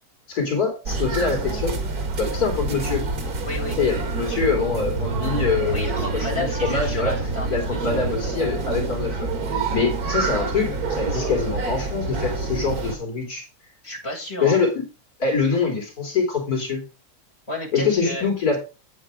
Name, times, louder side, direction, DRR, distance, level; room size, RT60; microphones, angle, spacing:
voice 1, 0.3-1.8 2.2-3.0 3.8-7.1 7.5-13.4 14.4-14.8 15.2-16.8 17.7-18.6, left 5 dB, 80° left, 1 dB, 3.3 m, -24 dB
sound 1, 0.9-13.0, right 3 dB, 80° right, 2.3 m, -27 dB
voice 2, 3.4-3.8 5.7-8.0 13.8-14.6 17.5-18.3, left 1 dB, 20° left, -5 dB, 6.4 m, -32 dB
Brass instrument, 3.5-10.7, right 7 dB, 60° right, 2.0 m, -39 dB
8.6 x 8.1 x 4.9 m, 0.31 s
omnidirectional pair, 1.6 m